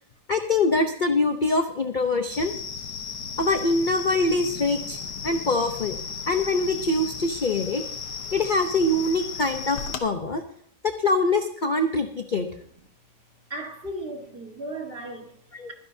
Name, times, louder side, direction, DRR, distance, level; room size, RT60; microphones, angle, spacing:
voice 1, 0.3-2.5 3.4-5.0 5.2-6.0 6.3-7.8 8.3-10.4 10.8-12.5 15.5-15.7, left 2 dB, 40° left, 0.7 m, -24 dB
sound 1, 2.3-10.0, left 6 dB, 85° left, 1.8 m, -35 dB
voice 2, 13.5-15.4, right 1 dB, 35° right, 1.8 m, -35 dB
23.5 x 10.5 x 2.8 m
omnidirectional pair, 1.8 m